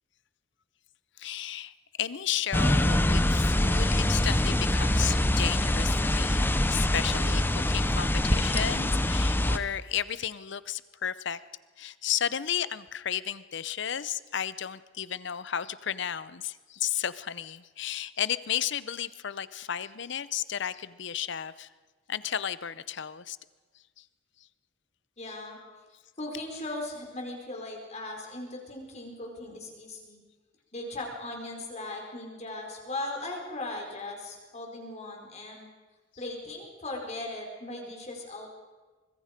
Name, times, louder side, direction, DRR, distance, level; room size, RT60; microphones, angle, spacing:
voice 1, 1.2-11.4 11.8-21.7 22.1-23.4 24.0-24.1, left 9 dB, 65° left, 16 dB, 0.7 m, -33 dB
sound 1, 2.5-9.6, left 1 dB, 10° left, 0.7 m, -24 dB
voice 2, 25.2-25.6 26.2-30.2 30.7-35.7 36.2-38.5, left 2 dB, 35° left, 1 dB, 4.7 m, -38 dB
25.0 x 22.0 x 5.2 m, 1.3 s
head